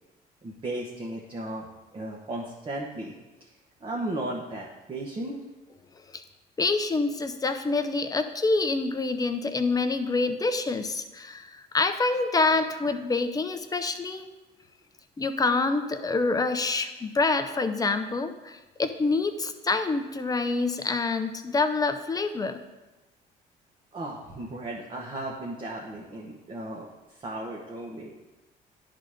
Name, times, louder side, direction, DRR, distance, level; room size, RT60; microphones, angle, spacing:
voice 1, 0.4-1.7 1.9-3.1 3.4-3.5 3.8-5.4 23.9-28.1, right 1 dB, 30° right, -3 dB, 1.2 m, -35 dB
voice 2, 6.6-14.3 15.2-22.6, left 3 dB, 20° left, 8 dB, 0.6 m, -26 dB
10.5 x 4.0 x 5.0 m, 1.1 s
cardioid pair, 110°, 17 cm